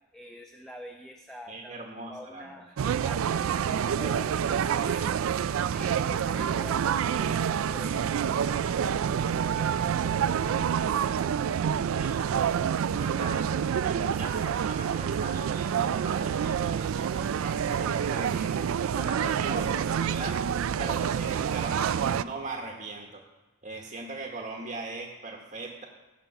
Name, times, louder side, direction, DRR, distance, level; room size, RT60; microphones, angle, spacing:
voice 1, 0.1-1.8 2.1-10.7, equal, ahead, 2 dB, 0.6 m, -46 dB
voice 2, 1.5-2.5 11.9-12.5 12.9-13.4 13.8-20.4 20.8-23.2 23.6-25.9, right 3 dB, 35° right, 0 dB, 1.1 m, -39 dB
sound 1, 2.8-22.2, right 8 dB, 70° right, 0.3 m, -27 dB
15.5 x 5.5 x 5.8 m, 1.1 s
head